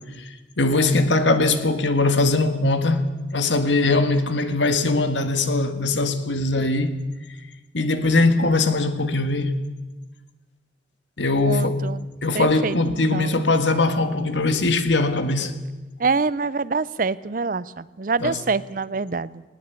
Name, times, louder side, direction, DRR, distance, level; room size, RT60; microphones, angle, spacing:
voice 1, 0.6-3.1 3.3-7.0 7.7-9.6 11.2-11.8 12.2-15.5 18.2-18.4, left 2 dB, 80° left, 1.9 m, -21 dB
voice 2, 11.4-12.0 12.3-13.4 16.0-19.4, right 4 dB, 45° right, 0.6 m, -26 dB
20.0 x 19.0 x 8.3 m
head